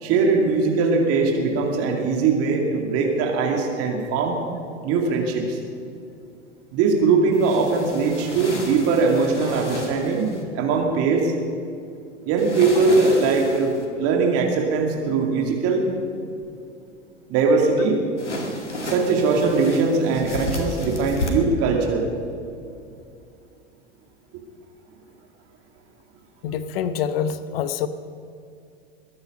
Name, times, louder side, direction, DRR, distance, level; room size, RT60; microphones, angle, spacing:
voice 1, 0.0-4.4 4.8-5.6 6.7-11.3 12.3-15.8 17.3-18.0 18.8-22.1, right 4 dB, 45° right, 1 dB, 2.5 m, -21 dB
sound 1, 7.3-10.4 12.4-13.9 18.2-21.3, left 1 dB, 80° left, 2.2 m, -32 dB
voice 2, 26.4-27.9, left 8 dB, 55° left, 12 dB, 1.0 m, -26 dB
22.5 x 9.6 x 5.5 m, 2.5 s
figure-of-eight pair, 85°, 35 cm